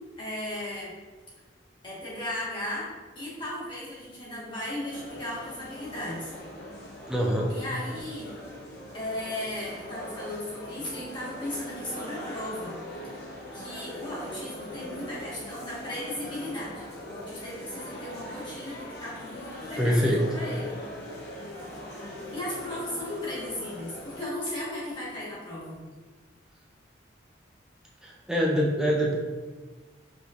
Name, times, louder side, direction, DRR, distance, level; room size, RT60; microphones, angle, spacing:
voice 1, 0.2-0.9 1.8-2.9 3.1-6.3 7.5-8.3 8.9-12.8 13.5-20.8 22.3-25.9, left 1 dB, 25° left, -8 dB, 1.3 m, -36 dB
sound 1, 4.9-24.3, equal, 55° left, 0.6 m, -41 dB
voice 2, 7.1-7.5 19.8-20.2 28.0-29.2, equal, 5° right, -3 dB, 0.4 m, -24 dB
5.0 x 3.0 x 2.4 m, 1.3 s
head